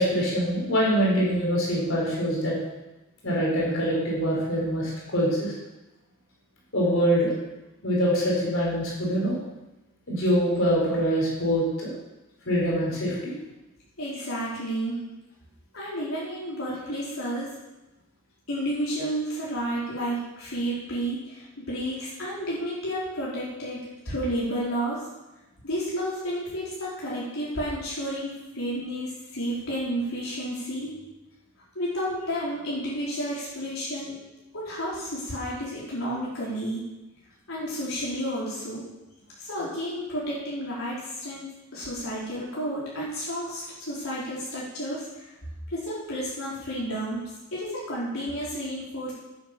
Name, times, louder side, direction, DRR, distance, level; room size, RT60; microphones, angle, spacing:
voice 1, 0.0-2.6 3.2-5.5 6.7-7.3 7.8-9.4 10.1-11.9 12.5-13.3, equal, 70° left, -4 dB, 4.5 m, -24 dB
voice 2, 14.0-15.1 15.7-17.5 18.5-23.8 24.0-25.0 25.6-30.9 31.7-34.1 34.5-36.8 37.5-38.8 39.4-45.2 45.7-49.1, equal, 85° left, -8 dB, 4.2 m, -31 dB
10.5 x 8.5 x 6.7 m, 1.0 s
head